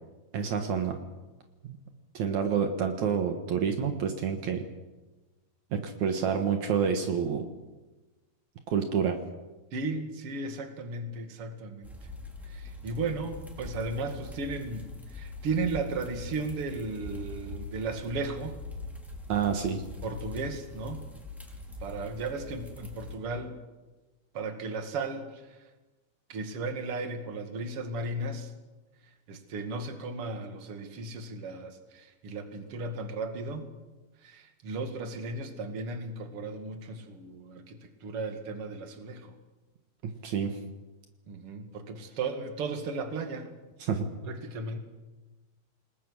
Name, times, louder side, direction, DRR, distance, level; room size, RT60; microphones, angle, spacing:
voice 1, 0.3-1.0 1.6-1.8 2.1-4.6 5.7-7.4 8.7-9.2 19.3-19.8 40.0-40.6 43.8-44.1, right 7 dB, 70° right, 5 dB, 2.8 m, -28 dB
voice 2, 9.7-11.9 12.4-18.5 20.0-21.0 21.8-23.6 24.3-25.6 26.3-28.5 29.3-33.7 34.2-39.3 41.3-43.5 44.2-44.8, right 3 dB, 50° right, 6 dB, 2.9 m, -35 dB
sound 1, 11.8-23.2, left 2 dB, ahead, 4.5 m, -42 dB
28.5 x 20.5 x 6.5 m, 1.2 s
omnidirectional pair, 3.5 m